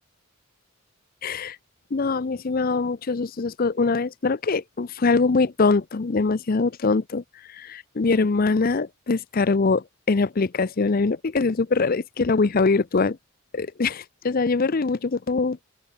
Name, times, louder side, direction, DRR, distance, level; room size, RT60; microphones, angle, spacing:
voice 1, 1.2-1.6 1.9-7.2 7.5-13.2 13.5-15.6, left 4 dB, 45° left, 0.6 m, -23 dB
open air
head